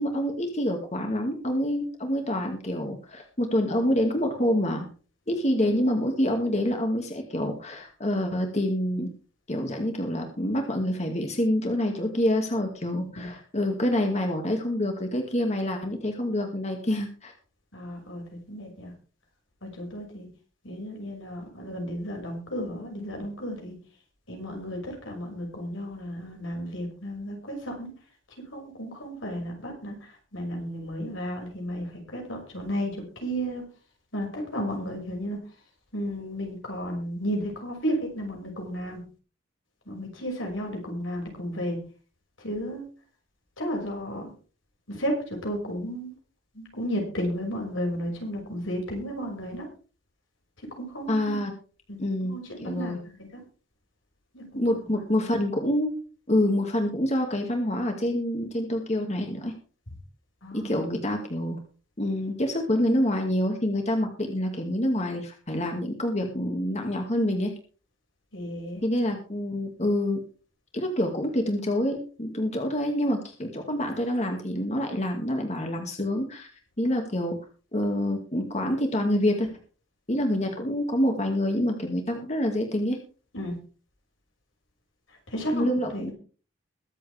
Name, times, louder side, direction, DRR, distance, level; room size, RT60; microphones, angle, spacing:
voice 1, 0.0-4.9 5.3-9.1 9.5-17.3 51.1-51.5 52.0-53.0 54.5-55.9 56.3-59.5 60.5-61.6 62.0-67.5 68.8-70.2 70.7-76.5 76.8-77.3 77.7-79.5 80.1-83.0 85.5-86.1, left 1 dB, 35° left, 3 dB, 2.2 m, -27 dB
voice 2, 12.9-13.3 17.7-18.9 19.6-20.3 20.6-23.8 24.3-27.9 28.5-30.0 30.3-33.6 34.1-35.4 35.9-39.0 39.9-41.8 42.4-42.8 43.6-44.3 44.9-46.1 46.5-49.7 50.7-51.4 51.9-53.3 54.3-54.6 60.4-60.7 68.3-68.8 83.3-83.6 85.3-85.7 85.9-86.1, equal, 85° left, 1 dB, 6.0 m, -33 dB
22.5 x 8.0 x 3.5 m, 0.37 s
head